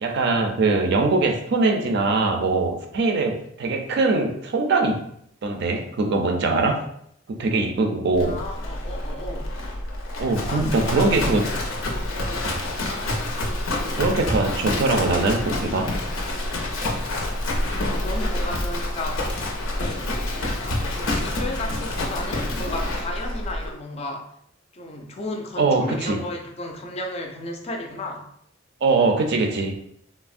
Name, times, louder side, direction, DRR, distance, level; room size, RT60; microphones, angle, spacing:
voice 1, 0.0-5.0 5.4-6.9 7.3-8.4 10.2-11.5 12.4-12.6 14.0-15.9 25.6-26.2 28.8-29.7, right 3 dB, 60° right, 4 dB, 0.4 m, -22 dB
Livestock farm animals working animals, 8.2-23.7, left 1 dB, 90° left, 0.6 m, -27 dB
voice 2, 8.2-9.5 10.5-11.4 12.1-12.6 14.8-14.9 17.6-24.3 24.7-28.3, left 1 dB, 30° left, 2 dB, 0.4 m, -34 dB
3.3 x 2.0 x 2.4 m, 0.70 s
head